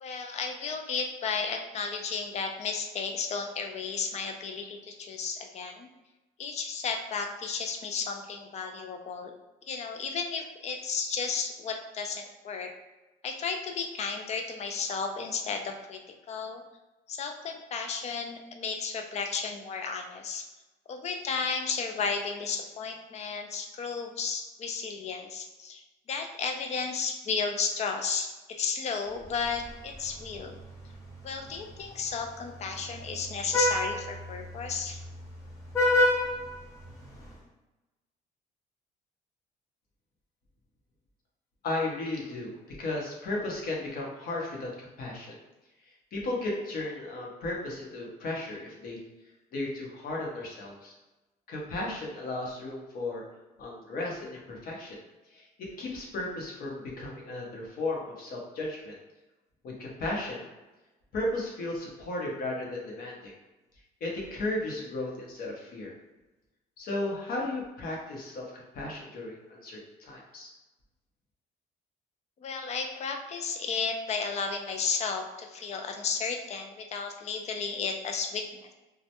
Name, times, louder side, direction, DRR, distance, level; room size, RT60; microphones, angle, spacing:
voice 1, 0.0-5.9 6.4-9.3 9.7-12.7 13.2-16.0 16.3-16.6 17.1-20.5 20.9-30.6 31.2-35.0 72.4-78.7, left 5 dB, 40° left, 4 dB, 0.4 m, -33 dB
Vehicle horn car horn honking, 29.2-37.4, left 1 dB, 15° left, 0.9 m, -31 dB
voice 2, 41.6-45.4 46.1-49.0 49.5-50.9 51.5-53.2 53.6-55.0 55.3-58.9 59.6-60.5 61.1-63.3 64.0-65.9 66.8-70.5, left 2 dB, 60° left, -2 dB, 0.8 m, -35 dB
2.2 x 2.1 x 2.8 m, 1.1 s
cardioid pair, 110°, 17 cm